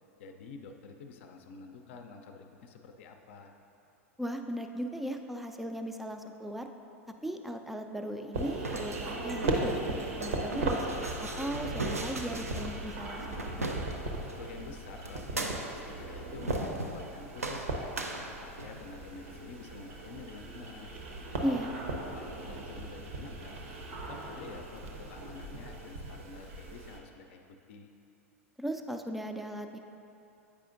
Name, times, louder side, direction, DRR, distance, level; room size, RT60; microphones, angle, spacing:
voice 1, 0.2-3.6 14.3-17.9 18.2-20.9 21.4-21.8 22.1-23.6 24.1-27.4 27.7-27.9, left 4 dB, 55° left, 5 dB, 0.5 m, -48 dB
voice 2, 4.2-6.7 7.2-10.9 11.4-13.8 21.4-21.7 28.6-29.8, equal, ahead, 5 dB, 0.4 m, -37 dB
sound 1, 8.3-27.0, right 2 dB, 65° right, 0.8 m, -38 dB
sound 2, 8.4-14.4 15.1-15.9 16.4-17.1 17.4-18.9, right 2 dB, 85° right, 0.5 m, -39 dB
8.5 x 4.9 x 2.5 m, 2.8 s
figure-of-eight pair, 90°, 8 cm